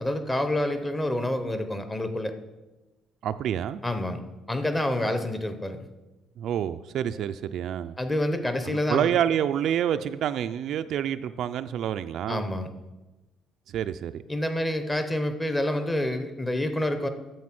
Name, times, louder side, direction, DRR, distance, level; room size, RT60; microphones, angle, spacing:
voice 1, 0.0-2.3 3.8-4.2 4.5-5.8 8.0-9.1 12.3-12.7 14.3-17.1, left 1 dB, 10° left, 9 dB, 0.7 m, -28 dB
voice 2, 3.2-3.8 6.4-7.9 8.6-12.4 13.7-14.2, right 10 dB, 50° right, 10 dB, 0.3 m, -28 dB
9.4 x 7.0 x 5.9 m, 1.1 s
cardioid pair, 165°, 0 cm